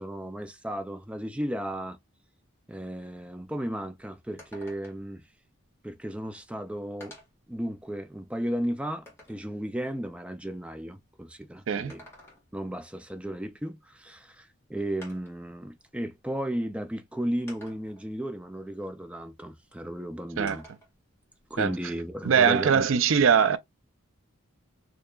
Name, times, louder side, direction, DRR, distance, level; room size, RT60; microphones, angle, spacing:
voice 1, 0.0-2.0 2.7-5.2 5.8-7.1 7.5-12.1 12.5-20.7 21.5-22.8 23.1-23.2, right 1 dB, 5° right, 0.4 m, -34 dB
sound 1, 3.5-3.6 3.9-4.0 4.4-5.1 6.2-6.3 7.0-7.5 8.1-9.5 11.7-12.7 14.2-14.3 15.0-15.5 16.5-16.6 17.5-18.1 20.5-20.9 21.3-22.4, equal, 10° left, 1.7 m, -51 dB
voice 2, 22.2-23.6, right 6 dB, 70° right, 0.4 m, -21 dB
4.5 x 2.9 x 2.3 m
head